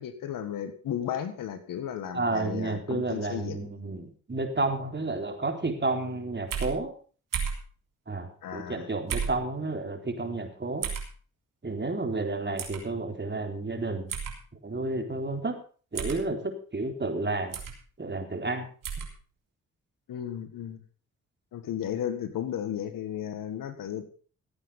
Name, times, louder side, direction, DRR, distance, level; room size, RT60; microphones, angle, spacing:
voice 1, 0.0-3.7 8.4-8.9 20.1-20.8 21.5-24.1, left 9 dB, 80° left, 10 dB, 1.8 m, -34 dB
voice 2, 2.1-6.9 8.1-10.9 11.6-14.1 14.6-15.6 15.9-17.6 18.0-18.7, right 3 dB, 35° right, 4 dB, 3.9 m, -31 dB
sound 1, 6.5-6.7 7.3-7.6 9.1-9.4 10.8-11.1 12.6-12.8 14.1-14.3 15.9-16.2 17.5-17.8 18.8-19.1, right 6 dB, 75° right, 3.5 m, -32 dB
16.0 x 8.8 x 5.6 m, 0.41 s
supercardioid pair, 45°, 33 cm